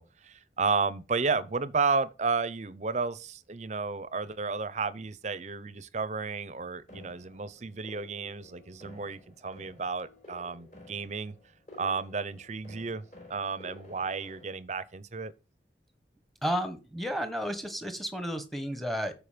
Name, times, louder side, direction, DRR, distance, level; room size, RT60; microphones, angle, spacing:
voice 1, 0.0-11.3 11.8-13.0 13.3-15.3, right 4 dB, 40° right, 0.6 m, -32 dB
sound 1, 6.9-14.6, left 2 dB, 40° left, 4.4 m, -52 dB
voice 2, 16.4-19.1, equal, ahead, 1.2 m, -32 dB
13.0 x 5.1 x 5.1 m
head